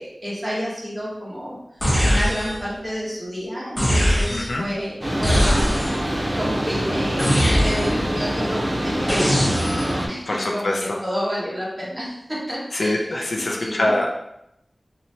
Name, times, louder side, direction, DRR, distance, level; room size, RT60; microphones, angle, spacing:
voice 1, 0.0-1.5 2.0-5.8 6.4-13.2 13.6-13.9, equal, 15° right, -6 dB, 1.1 m, -30 dB
sound 1, 1.8-2.7 3.8-4.6 5.2-6.1 7.2-8.1 9.1-10.0, equal, 25° left, 1.1 m, -21 dB
voice 2, 4.3-4.6 10.3-11.0 12.7-14.1, left 1 dB, 70° left, 0 dB, 0.4 m, -24 dB
sound 2, 5.0-10.1, equal, 50° right, 0.6 m, -25 dB
2.9 x 2.2 x 2.7 m, 0.83 s
wide cardioid pair, 65°, 0 cm